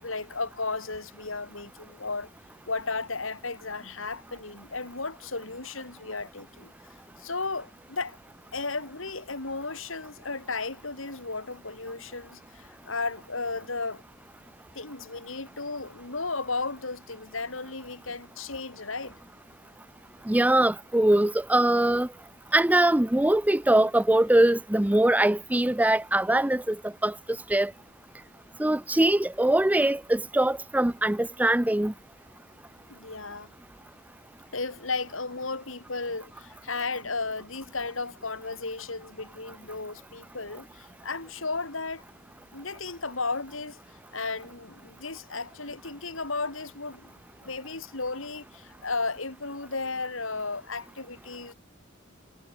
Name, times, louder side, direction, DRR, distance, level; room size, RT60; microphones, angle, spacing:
voice 1, 0.0-2.3 2.7-6.7 7.2-8.2 8.5-14.0 14.7-19.2 32.9-33.5 34.5-42.0 42.5-43.8 44.1-47.1 47.4-51.5, left 3 dB, 90° left, 4.3 m, -34 dB
voice 2, 20.3-22.1 22.5-26.8 27.0-27.1 27.5-27.7 28.6-31.9, right 1 dB, 10° right, 0.5 m, -22 dB
head